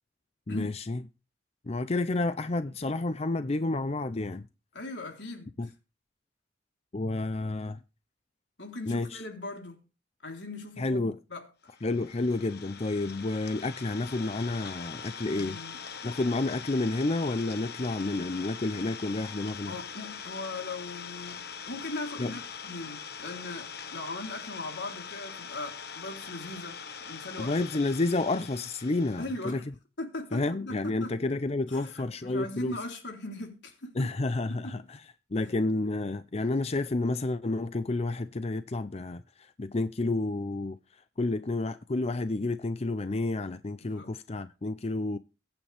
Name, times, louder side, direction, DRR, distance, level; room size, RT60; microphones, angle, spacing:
voice 1, 0.5-1.0 1.7-4.5 5.6-5.7 6.9-7.8 8.9-9.1 10.8-11.2 11.8-15.6 16.0-19.8 22.2-22.3 27.4-29.6 30.3-32.7 34.0-35.0 35.3-40.8 41.2-45.2, left 2 dB, 35° left, 0.6 m, -30 dB
voice 2, 4.7-5.7 8.6-9.8 10.2-11.5 15.4-15.8 19.7-27.5 29.2-29.7 30.0-31.2 31.7-34.1 34.5-34.8 35.3-35.5 43.8-44.2, left 2 dB, 80° left, 3.7 m, -39 dB
Idling, 11.7-29.5, left 6 dB, 60° left, 1.4 m, -42 dB
23.0 x 8.8 x 3.5 m
head